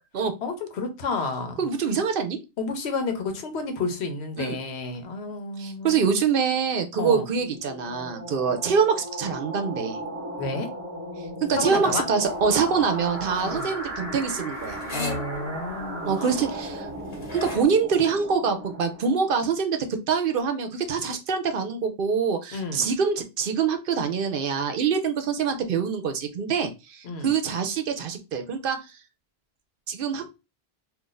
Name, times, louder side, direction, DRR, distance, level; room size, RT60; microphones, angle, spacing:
voice 1, 0.4-1.6 2.6-6.0 7.0-7.3 10.4-10.7 11.5-12.1 13.4-13.7 14.9-16.1 22.5-22.8 27.0-27.3, left 3 dB, 85° left, 1.0 m, -30 dB
voice 2, 1.6-2.4 4.4-4.6 5.6-10.0 11.4-14.8 16.1-16.9 17.3-19.8 20.1-28.8 29.9-30.3, right 6 dB, 65° right, 0.7 m, -25 dB
sound 1, 6.8-19.5, right 1 dB, 15° right, 0.7 m, -36 dB
sound 2, 12.2-17.7, left 2 dB, 50° left, 1.2 m, -38 dB
2.5 x 2.5 x 3.8 m
omnidirectional pair, 1.1 m